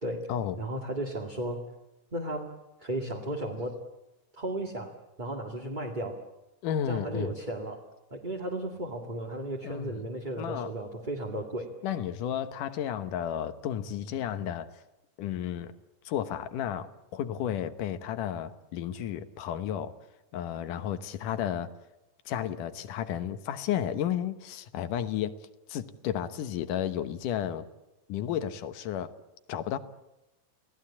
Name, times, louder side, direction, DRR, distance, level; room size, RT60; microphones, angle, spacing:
voice 1, 0.6-1.6 2.1-2.5 2.8-3.7 4.4-4.9 5.2-6.2 6.9-7.8 8.1-11.7, right 1 dB, 15° right, 0 dB, 1.9 m, -34 dB
voice 2, 6.6-7.3 9.6-10.0 10.4-10.7 11.8-14.8 15.2-15.7 16.0-19.9 20.3-21.7 22.3-25.3 25.7-27.7 28.1-29.1 29.5-29.8, left 10 dB, 80° left, 12 dB, 2.7 m, -32 dB
29.0 x 18.0 x 8.6 m, 0.96 s
omnidirectional pair, 3.6 m